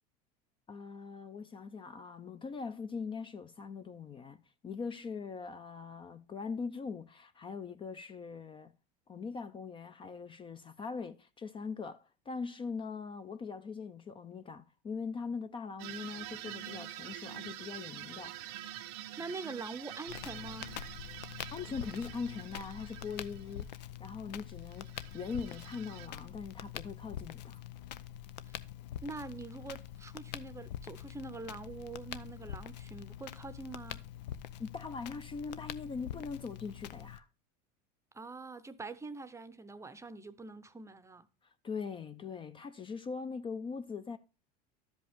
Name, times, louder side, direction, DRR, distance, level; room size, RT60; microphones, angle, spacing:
voice 1, 0.7-8.7 9.1-18.4 21.5-27.6 34.6-37.3 41.4-44.2, left 5 dB, 25° left, 0.5 m, -41 dB
sound 1, 15.8-23.6 24.7-26.1, right 13 dB, 70° right, 0.7 m, -46 dB
voice 2, 19.2-20.7 28.5-28.6 29.0-34.1 38.1-41.3, right 3 dB, 15° right, 0.7 m, -44 dB
Crackle, 20.1-37.2, left 11 dB, 90° left, 0.6 m, -45 dB
12.5 x 5.2 x 3.5 m
supercardioid pair, 100°, 21 cm